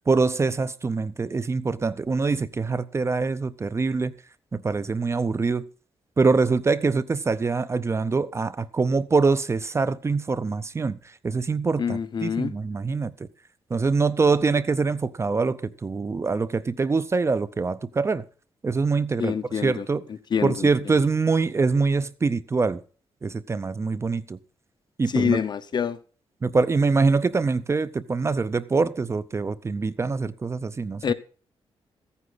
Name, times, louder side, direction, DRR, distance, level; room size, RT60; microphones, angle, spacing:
voice 1, 0.1-4.1 4.5-5.7 6.2-13.3 13.7-18.3 18.6-20.0 20.4-22.8 23.2-24.4 25.0-25.4 26.4-31.1, right 4 dB, 25° right, 0.5 m, -24 dB
voice 2, 11.8-12.5 19.2-19.9 20.3-21.0 25.1-26.0 31.0-31.1, left 7 dB, 45° left, 0.8 m, -26 dB
15.0 x 9.7 x 4.0 m
wide cardioid pair, 130°, 10 cm